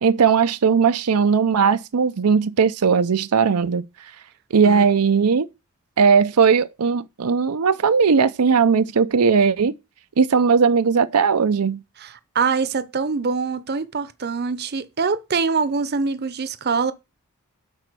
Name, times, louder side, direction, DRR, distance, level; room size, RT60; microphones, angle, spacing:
voice 1, 0.0-3.8 4.5-5.5 6.0-9.7 10.2-11.8, right 6 dB, 85° right, 0.6 m, -18 dB
voice 2, 12.0-16.9, right 5 dB, 45° right, 0.7 m, -24 dB
11.5 x 4.3 x 6.1 m
head